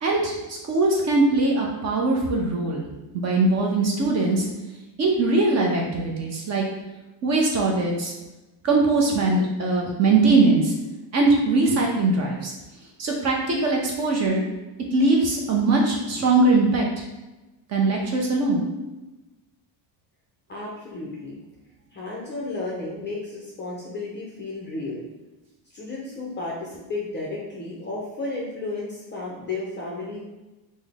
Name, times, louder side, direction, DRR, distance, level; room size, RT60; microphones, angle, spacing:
voice 1, 0.0-2.8 3.1-4.5 5.0-6.6 7.2-8.1 8.6-10.7 11.1-12.5 13.0-14.4 14.9-17.0 17.7-18.6, right 3 dB, 35° right, -1 dB, 0.5 m, -21 dB
voice 2, 20.5-21.4 21.9-25.1 25.7-30.2, left 2 dB, 25° left, -4 dB, 0.4 m, -33 dB
3.8 x 2.0 x 3.4 m, 1.1 s
cardioid pair, 160°, 48 cm